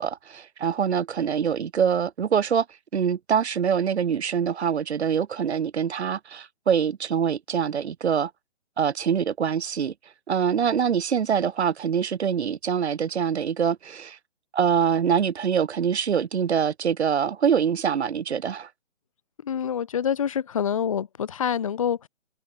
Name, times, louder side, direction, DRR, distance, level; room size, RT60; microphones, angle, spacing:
voice 1, 0.0-2.6 2.9-8.3 8.8-9.9 10.3-14.2 14.5-18.7, right 7 dB, 70° right, 1.2 m, -24 dB
voice 2, 19.4-22.1, left 8 dB, 30° left, 0.5 m, -26 dB
hypercardioid pair, 160°, 35 cm